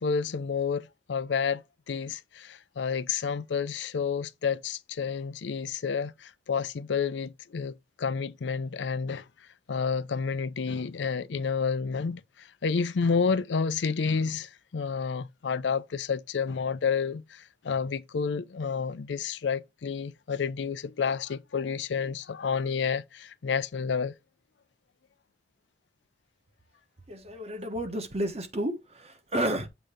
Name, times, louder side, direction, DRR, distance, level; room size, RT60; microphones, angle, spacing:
voice 1, 0.0-9.2 9.7-24.1, left 5 dB, 75° left, 0.5 m, -30 dB
voice 2, 27.1-29.7, right 1 dB, 35° right, 1.3 m, -31 dB
7.7 x 2.9 x 5.0 m
head